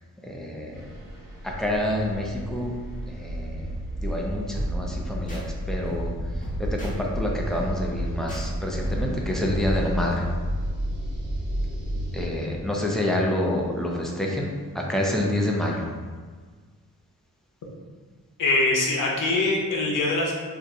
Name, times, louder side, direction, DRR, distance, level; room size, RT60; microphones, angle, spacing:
voice 1, 0.2-0.8 1.4-2.7 3.1-3.7 4.0-6.1 6.6-10.2 12.1-15.9, left 1 dB, ahead, -2 dB, 0.5 m, -27 dB
sound 1, 0.7-12.2, equal, 80° right, 1.2 m, -32 dB
sound 2, 4.0-9.6, right 1 dB, 20° left, 1.1 m, -35 dB
voice 2, 18.4-20.3, left 2 dB, 70° left, -2 dB, 0.8 m, -23 dB
2.6 x 2.3 x 4.1 m, 1.5 s
cardioid pair, 75°, 34 cm